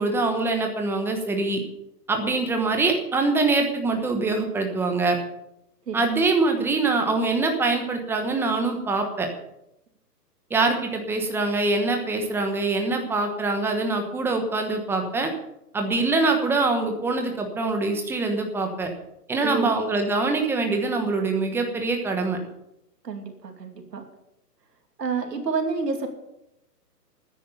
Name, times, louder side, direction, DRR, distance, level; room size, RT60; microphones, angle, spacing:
voice 1, 0.0-1.6 2.1-5.2 5.9-9.3 10.5-15.3 15.7-18.9 19.3-22.4, right 3 dB, 5° right, 4 dB, 1.1 m, -24 dB
voice 2, 19.4-19.8 23.0-24.0 25.0-26.1, right 5 dB, 80° right, 5 dB, 2.8 m, -29 dB
13.0 x 10.0 x 6.9 m, 0.83 s
hypercardioid pair, 150°, 48 cm